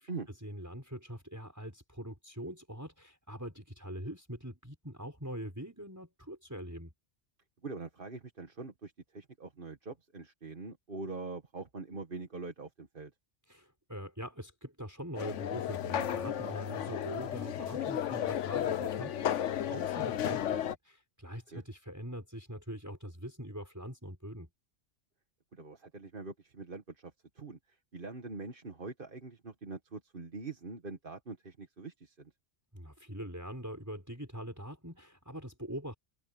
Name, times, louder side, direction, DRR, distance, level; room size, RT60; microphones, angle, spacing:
voice 1, 0.4-6.9 13.5-24.5 32.7-35.9, equal, 15° right, 6.1 m, -43 dB
voice 2, 7.6-13.1 21.5-21.6 25.5-32.3, right 3 dB, 45° right, 1.9 m, -43 dB
sound 1, 15.1-20.7, left 10 dB, 80° left, 1.1 m, -33 dB
omnidirectional pair, 1.2 m